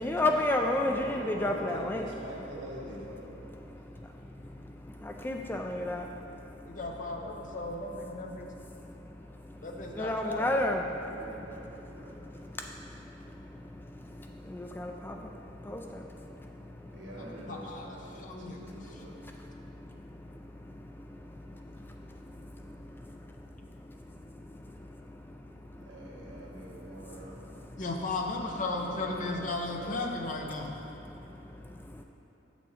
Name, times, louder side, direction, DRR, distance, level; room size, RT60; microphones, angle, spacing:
voice 1, 0.0-2.1 3.4-7.7 8.0-17.4 17.7-28.1 29.7-29.8 30.5-32.0, left 1 dB, 10° left, 2 dB, 0.3 m, -37 dB
voice 2, 0.8-3.3 4.1-4.3 11.0-12.4 16.9-19.2 25.8-27.4 28.8-30.1, right 1 dB, 70° right, -5 dB, 1.6 m, -44 dB
voice 3, 6.6-8.5 9.6-10.5 17.5-17.9 18.2-18.6 27.8-30.7, left 2 dB, 45° left, 1 dB, 0.8 m, -35 dB
7.8 x 6.2 x 4.2 m, 3.0 s
head